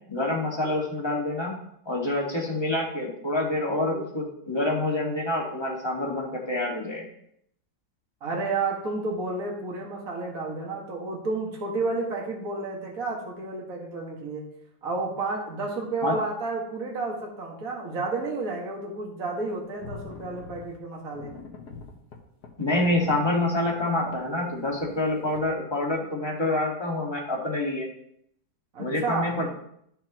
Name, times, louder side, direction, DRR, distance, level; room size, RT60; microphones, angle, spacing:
voice 1, 0.1-1.5 1.8-7.1 16.0-16.2 22.6-27.9 28.8-29.5, left 1 dB, 15° left, -2 dB, 1.7 m, -27 dB
voice 2, 8.2-14.4 14.8-21.3 28.7-29.3, right 3 dB, 45° right, -2 dB, 2.2 m, -31 dB
sound 1, 19.5-19.6 19.8-20.7 21.1-23.8 24.1-24.2 24.7-25.0 25.4-25.5, left 4 dB, 55° left, 1.7 m, -43 dB
12.5 x 6.7 x 3.0 m, 0.73 s
omnidirectional pair, 2.1 m